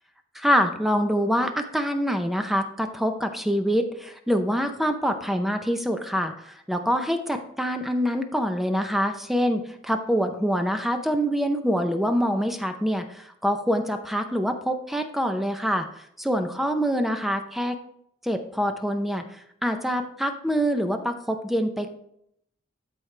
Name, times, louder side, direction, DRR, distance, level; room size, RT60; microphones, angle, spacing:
voice 1, 0.4-15.9 16.2-17.8 18.2-19.2 19.6-21.9, equal, ahead, 6 dB, 0.6 m, -25 dB
13.0 x 4.6 x 3.3 m, 0.73 s
head